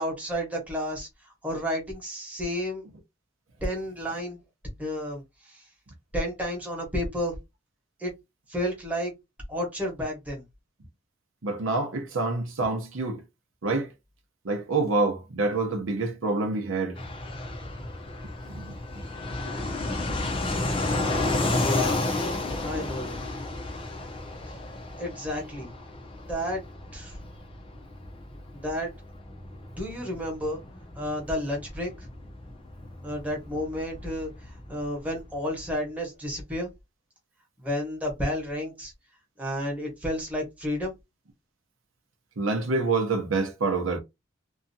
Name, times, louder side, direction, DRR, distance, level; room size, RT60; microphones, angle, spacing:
voice 1, 0.0-2.8 3.6-4.4 4.8-5.6 6.1-7.4 8.0-8.1 8.5-9.1 9.5-10.4 21.6-22.0 22.6-23.2 24.5-24.6 25.0-25.7 26.3-26.6 26.9-27.2 28.5-28.9 29.8-30.6 30.9-32.1 33.0-36.7 37.6-38.9 39.4-40.9, equal, 10° right, 1.1 m, -31 dB
voice 2, 11.4-13.2 13.6-13.9 14.5-16.9 18.6-18.7 42.4-44.0, right 3 dB, 75° right, 0.7 m, -26 dB
Fixed-wing aircraft airplane, 17.0-35.3, left 2 dB, 25° left, 0.6 m, -32 dB
2.7 x 2.4 x 2.6 m
head